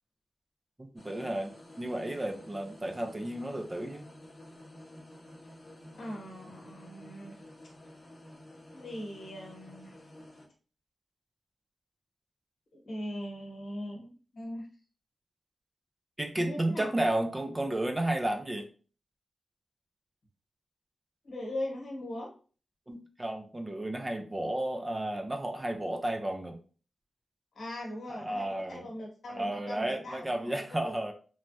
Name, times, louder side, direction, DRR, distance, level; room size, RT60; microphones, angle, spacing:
voice 1, 0.8-4.1 16.2-18.7 22.9-26.6 28.1-28.9 29.3-31.1, right 1 dB, 20° right, 4 dB, 0.3 m, -32 dB
sound 1, 1.0-10.5, left 1 dB, 40° left, 0.6 m, -51 dB
voice 2, 5.9-7.4 8.7-10.0 12.7-14.7 16.4-16.9 21.2-22.3 27.5-30.9, left 1 dB, 65° left, -1 dB, 1.0 m, -40 dB
3.1 x 2.2 x 2.6 m, 0.39 s
wide cardioid pair, 160°, 0 cm